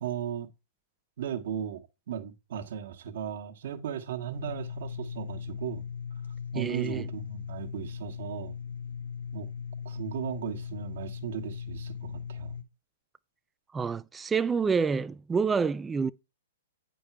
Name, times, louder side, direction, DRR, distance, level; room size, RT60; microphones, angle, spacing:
voice 1, 0.0-0.5 1.2-5.9 6.5-8.5 9.3-9.5 9.8-12.6, right 9 dB, 65° right, 1.3 m, -36 dB
sound 1, 4.3-12.6, left 7 dB, 90° left, 1.0 m, -38 dB
voice 2, 6.5-7.1 13.7-16.1, right 5 dB, 15° right, 0.4 m, -28 dB
8.9 x 5.3 x 4.6 m
hypercardioid pair, 130°, 0 cm